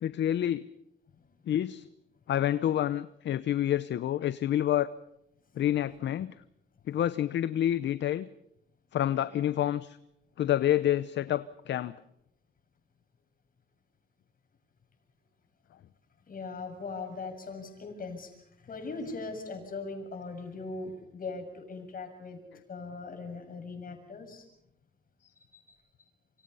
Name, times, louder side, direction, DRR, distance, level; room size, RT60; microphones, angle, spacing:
voice 1, 0.0-0.7 1.5-1.9 2.3-4.9 5.6-6.3 6.9-8.3 8.9-10.0 10.4-11.9, left 11 dB, 65° left, 15 dB, 0.8 m, -28 dB
voice 2, 16.3-18.3 18.6-22.4 22.7-24.4 25.5-25.8, left 3 dB, 45° left, 5 dB, 7.1 m, -40 dB
27.5 x 26.0 x 5.6 m, 0.79 s
cardioid pair, 90°, 20 cm